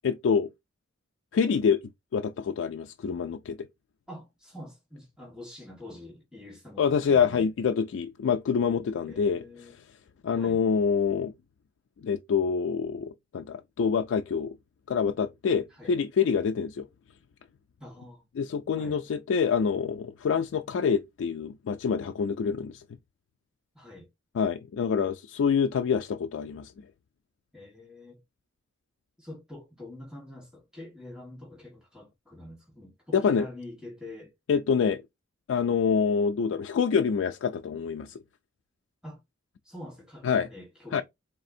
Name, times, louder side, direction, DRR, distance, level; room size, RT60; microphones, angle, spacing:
voice 1, 0.0-0.5 1.3-1.8 2.1-3.6 6.8-9.4 10.2-11.3 12.0-14.5 14.9-16.9 18.4-22.8 24.3-26.7 33.1-33.4 34.5-35.0 35.5-38.2 40.2-40.5 40.9-41.0, left 6 dB, 75° left, 0.3 m, -26 dB
voice 2, 4.1-7.5 8.8-9.8 10.3-10.6 15.7-15.9 17.8-18.3 18.7-19.1 23.7-24.1 27.5-28.2 29.2-34.3 39.0-39.2 39.6-41.0, left 1 dB, 5° right, 1.5 m, -45 dB
4.1 x 3.3 x 2.6 m
head